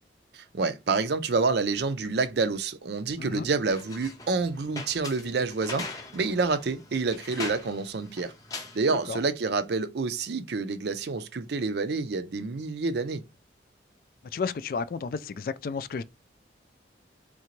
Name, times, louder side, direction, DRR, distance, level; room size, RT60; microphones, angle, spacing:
voice 1, 0.3-5.9 6.1-8.3 8.7-13.2, right 4 dB, 60° right, 0.5 m, -28 dB
voice 2, 3.2-3.5 9.1-9.2 14.3-16.0, left 5 dB, 50° left, 0.3 m, -32 dB
sound 1, 3.7-9.2, left 3 dB, 20° left, 0.7 m, -42 dB
3.8 x 3.3 x 3.1 m
head